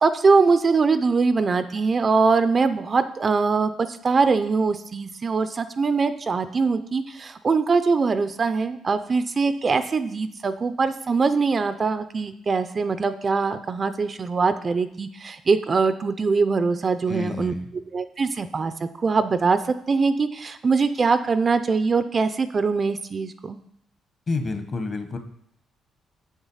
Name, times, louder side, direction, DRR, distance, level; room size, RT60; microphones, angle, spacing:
voice 1, 0.0-17.5 17.9-23.6, right 4 dB, 30° right, 11 dB, 0.5 m, -22 dB
voice 2, 17.1-17.7 24.3-25.2, left 3 dB, 35° left, 7 dB, 1.1 m, -29 dB
7.5 x 7.2 x 5.6 m, 0.71 s
cardioid pair, 125°, 0 cm